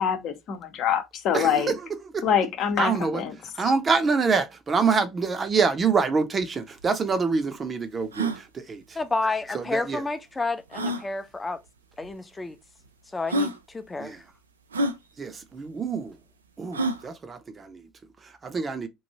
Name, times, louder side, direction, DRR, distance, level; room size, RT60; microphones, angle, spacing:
voice 1, 0.0-1.7 2.2-3.3 3.6-3.7, left 8 dB, 55° left, 0.8 m, -25 dB
voice 2, 1.3-1.9 2.1-2.2 2.8-3.2 3.6-8.8 9.5-10.0 14.0-14.2 15.2-16.1 16.6-17.8 18.4-18.9, right 5 dB, 35° right, 0.7 m, -26 dB
sound 1, 6.5-6.6 6.8-6.9 7.4-7.5 8.0-8.4 9.7-9.8 10.7-11.1 12.0-12.1 12.9-13.0 13.3-13.6 14.7-15.0 16.7-17.1, right 1 dB, 90° right, 0.3 m, -27 dB
voice 3, 8.9-11.6 12.0-12.6 13.1-14.2, left 3 dB, 20° left, 0.6 m, -30 dB
3.1 x 2.5 x 2.8 m
figure-of-eight pair, 60°, 0 cm